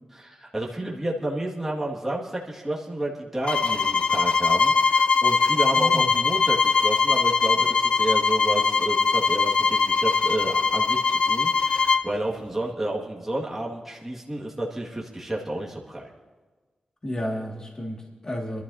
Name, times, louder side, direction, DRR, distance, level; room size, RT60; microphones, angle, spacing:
voice 1, 0.1-16.1, right 1 dB, 10° right, -4 dB, 2.0 m, -31 dB
sound 1, 3.4-12.1, left 5 dB, 45° left, 0.5 m, -21 dB
voice 2, 5.7-6.1 17.0-18.6, equal, 30° left, -1 dB, 2.2 m, -32 dB
26.0 x 12.5 x 2.8 m, 1.3 s
wide cardioid pair, 130°, 2 cm